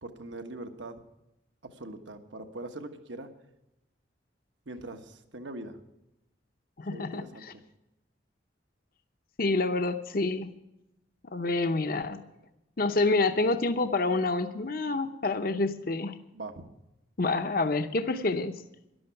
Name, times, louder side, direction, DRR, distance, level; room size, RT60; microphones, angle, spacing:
voice 1, 0.0-1.0 1.6-3.3 4.7-5.8 6.9-7.6 16.3-16.7, right 2 dB, 80° right, 6 dB, 1.3 m, -42 dB
voice 2, 6.8-7.5 9.4-10.5 11.3-12.2 12.8-16.2 17.2-18.5, left 3 dB, 50° left, 8 dB, 0.7 m, -28 dB
13.0 x 11.5 x 5.8 m, 0.91 s
head